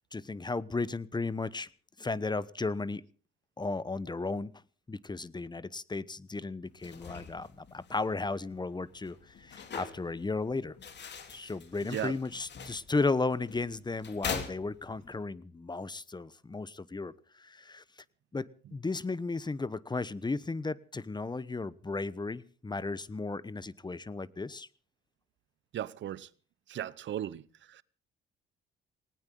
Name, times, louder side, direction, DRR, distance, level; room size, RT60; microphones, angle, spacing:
voice 1, 0.1-1.7 2.0-3.0 3.6-4.5 4.9-10.8 11.3-17.8 18.3-24.7, left 3 dB, 20° left, 1.0 m, -34 dB
sound 1, 6.7-15.2, left 6 dB, 55° left, 3.4 m, -44 dB
voice 2, 25.7-26.3 26.7-27.4 27.8-27.9, right 11 dB, 60° right, 0.9 m, -36 dB
19.5 x 19.0 x 3.8 m
supercardioid pair, 65°, 21 cm